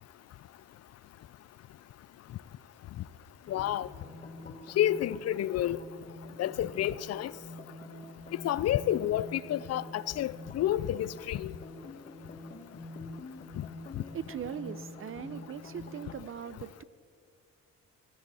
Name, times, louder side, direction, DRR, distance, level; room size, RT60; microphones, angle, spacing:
voice 1, 3.5-3.9 4.8-5.8 6.4-7.3 8.4-11.5, left 12 dB, 55° left, 0.4 m, -29 dB
sound 1, 3.5-16.2, left 2 dB, 30° left, 2.2 m, -47 dB
voice 2, 13.9-16.8, right 8 dB, 45° right, 0.7 m, -40 dB
15.0 x 15.0 x 4.2 m
cardioid pair, 90°, 30 cm